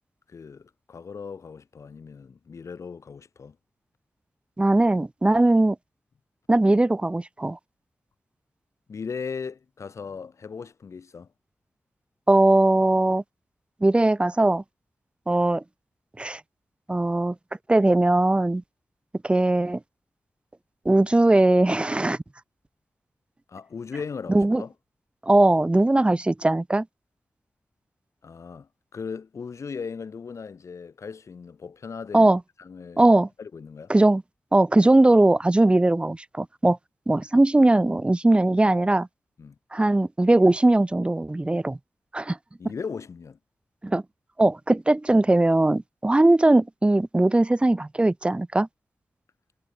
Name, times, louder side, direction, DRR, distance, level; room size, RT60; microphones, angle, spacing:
voice 1, 0.3-3.5 8.9-11.3 23.5-24.7 28.2-32.3 32.6-33.0 33.4-33.9 39.4-39.6 42.6-43.4, left 5 dB, 75° left, 6.8 m, -37 dB
voice 2, 4.6-5.8 6.5-7.6 12.3-13.2 13.8-14.6 15.3-15.6 16.2-16.4 16.9-17.3 17.7-18.6 19.2-19.8 20.8-22.2 24.3-24.6 25.2-26.8 32.1-32.4 33.0-33.3 33.9-34.2 34.5-36.8 37.1-39.1 39.7-41.8 42.1-42.4 43.8-44.0 44.4-48.7, right 2 dB, 20° right, 1.3 m, -20 dB
wide cardioid pair, 90°, 5 cm